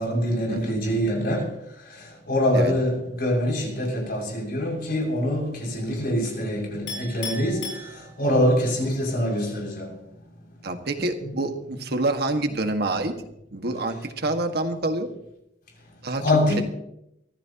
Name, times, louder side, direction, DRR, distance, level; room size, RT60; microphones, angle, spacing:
voice 1, 0.0-1.4 2.3-7.6 8.2-9.9 16.2-16.6, left 1 dB, 55° left, 6.4 m, -24 dB
Chink clink, 6.9-8.5, left 3 dB, 90° left, 8.0 m, -36 dB
voice 2, 10.6-13.1 13.5-15.1 16.0-16.2, right 2 dB, 60° right, 1.7 m, -27 dB
24.0 x 15.0 x 3.0 m
head